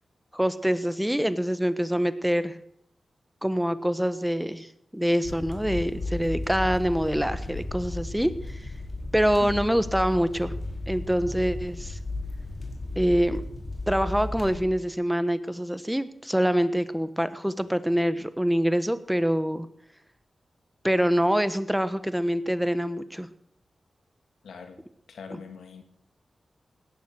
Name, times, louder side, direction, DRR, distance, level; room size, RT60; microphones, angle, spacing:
voice 1, 0.3-2.5 3.4-4.7 4.9-8.6 9.1-10.5 10.9-12.0 13.0-13.4 13.9-19.7 20.8-23.3 25.3-25.4, equal, 5° right, 13 dB, 1.3 m, -25 dB
sound 1, 5.2-14.6, left 2 dB, 55° left, 4.6 m, -34 dB
voice 2, 9.4-9.8 24.4-24.8 25.1-25.8, left 5 dB, 90° left, 7 dB, 2.0 m, -42 dB
18.0 x 10.5 x 6.5 m, 0.70 s
cardioid pair, 45°, 0 cm